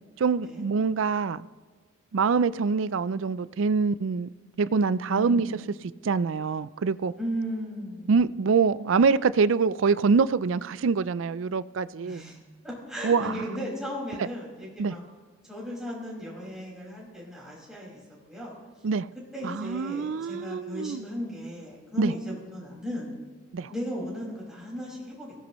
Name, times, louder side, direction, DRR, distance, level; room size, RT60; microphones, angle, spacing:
voice 1, 0.2-1.4 2.1-4.3 4.6-5.5 6.0-7.1 8.1-12.2 13.0-13.4 14.8-14.9 18.8-19.1 19.4-21.0 22.0-22.1 23.5-23.7, right 5 dB, 65° right, 0.4 m, -25 dB
voice 2, 5.1-5.6 7.2-8.2 12.0-12.4 12.6-15.0 15.4-18.0 18.3-18.5 19.3-23.1 23.7-25.3, equal, 5° right, 5.2 m, -36 dB
22.5 x 16.5 x 3.1 m
head